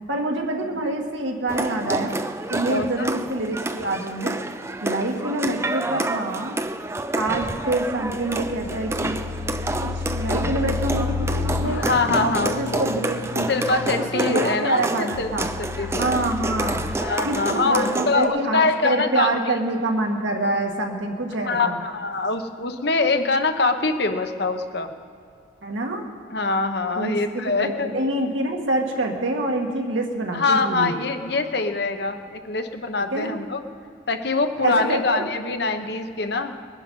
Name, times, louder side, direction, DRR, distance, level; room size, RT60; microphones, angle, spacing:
voice 1, 0.1-2.2 2.5-4.4 4.8-6.6 7.2-9.2 9.8-11.9 12.2-13.5 14.0-15.5 16.0-16.8 17.2-21.8 25.6-26.0 27.0-30.9 33.1-33.3 34.5-35.3, right 2 dB, 75° right, 1 dB, 1.8 m, -26 dB
sound 1, 1.5-18.2, right 2 dB, 15° right, 0.4 m, -29 dB
voice 2, 2.7-3.1 11.8-12.8 13.5-15.3 15.6-16.1 17.0-19.3 21.4-24.9 26.3-27.9 30.3-33.6 34.1-36.5, left 3 dB, 55° left, 7 dB, 1.0 m, -24 dB
sound 2, 7.5-16.9, left 4 dB, 75° left, 0.7 m, -31 dB
21.5 x 10.0 x 5.5 m, 2.5 s
head